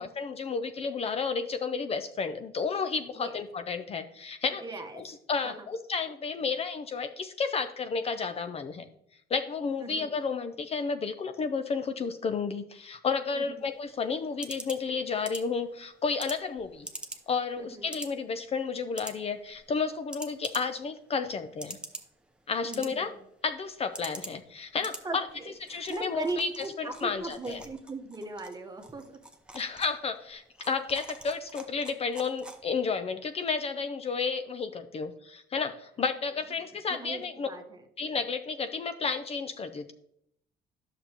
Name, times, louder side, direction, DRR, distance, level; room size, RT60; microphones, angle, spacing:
voice 1, 0.0-4.6 5.0-8.9 9.3-16.9 17.3-21.8 22.5-23.1 23.4-25.3 25.7-26.5 26.8-27.6 29.5-37.5 38.0-39.9, left 5 dB, 35° left, 8 dB, 0.5 m, -32 dB
voice 2, 4.5-5.1 5.4-5.7 9.8-10.1 13.3-13.6 17.6-17.9 22.6-23.1 25.0-29.2 36.6-37.8, right 3 dB, 20° right, 4 dB, 1.1 m, -39 dB
sound 1, 13.6-32.9, right 1 dB, 5° right, 0.8 m, -47 dB
10.0 x 6.6 x 2.9 m, 0.72 s
cardioid pair, 110°, 17 cm